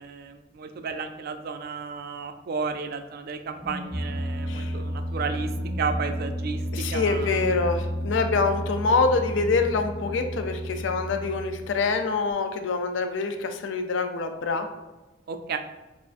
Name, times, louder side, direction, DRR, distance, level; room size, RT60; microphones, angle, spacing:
voice 1, 0.0-5.5 5.8-6.6 6.9-7.4 15.3-15.6, right 5 dB, 55° right, 8 dB, 0.4 m, -33 dB
sound 1, 3.4-12.2, equal, 20° left, 1.1 m, -32 dB
voice 2, 6.7-14.7, left 4 dB, 75° left, 6 dB, 0.4 m, -25 dB
6.8 x 2.5 x 2.4 m, 1.1 s
head